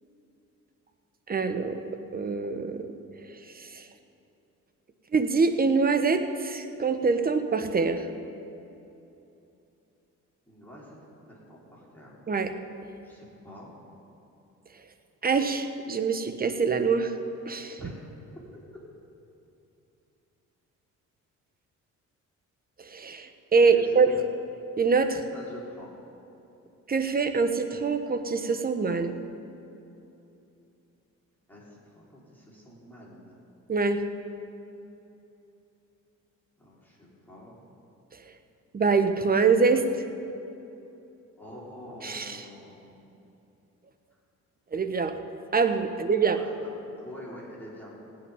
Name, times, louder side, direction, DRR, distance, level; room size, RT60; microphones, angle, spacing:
voice 1, 1.3-1.8 2.1-2.9 3.5-3.8 5.1-8.1 12.3-12.5 15.2-17.1 17.5-17.8 22.8-24.1 24.8-25.2 26.9-29.1 33.7-34.0 38.7-39.8 42.0-42.4 44.7-45.2 45.5-46.4, right 4 dB, 30° right, 8 dB, 1.0 m, -24 dB
voice 2, 10.5-11.0 11.3-12.1 13.0-13.8 17.8-18.0 23.6-24.2 25.3-25.9 31.5-33.4 36.6-37.7 41.4-43.0 46.2-48.0, left 1 dB, 5° left, -7 dB, 3.9 m, -46 dB
16.5 x 6.0 x 9.8 m, 2.8 s
cardioid pair, 90°, 30 cm